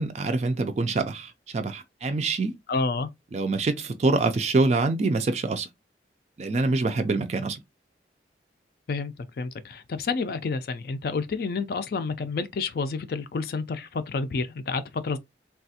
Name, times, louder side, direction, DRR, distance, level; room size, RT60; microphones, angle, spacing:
voice 1, 0.0-2.5 3.3-5.7 6.4-7.6, right 3 dB, 35° right, 0.3 m, -25 dB
voice 2, 2.7-3.1 8.9-15.2, left 4 dB, 55° left, 0.4 m, -29 dB
3.3 x 2.4 x 2.7 m
head